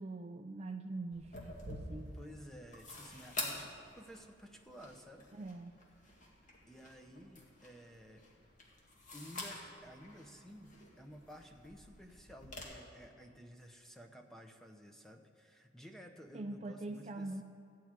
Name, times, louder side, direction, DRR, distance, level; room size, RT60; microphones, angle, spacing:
voice 1, 0.0-2.2 5.3-5.7 16.3-17.4, right 2 dB, 35° right, 6 dB, 0.4 m, -43 dB
sound 1, 1.1-12.6, left 2 dB, 40° left, 1.8 m, -48 dB
voice 2, 2.1-3.7 3.9-5.3 6.7-8.3 9.1-17.3, equal, ahead, 4 dB, 0.8 m, -54 dB
14.0 x 4.7 x 8.9 m, 2.5 s
head